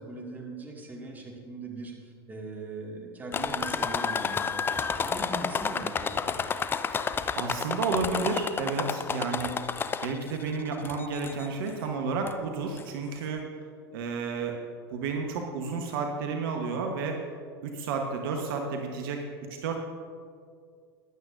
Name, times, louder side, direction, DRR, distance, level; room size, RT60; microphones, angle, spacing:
voice 1, 0.0-6.3, right 3 dB, 10° right, -1 dB, 2.0 m, -40 dB
sound 1, 3.3-10.4 10.8-11.5 12.3-12.4 12.8-12.9, left 6 dB, 15° left, 0.4 m, -30 dB
voice 2, 7.3-9.5 10.0-13.4 13.9-14.6 14.9-17.2 17.6-19.2 19.6-19.8, right 4 dB, 60° right, 3 dB, 1.1 m, -31 dB
15.0 x 10.5 x 2.6 m, 2.1 s
figure-of-eight pair, 90°, 14 cm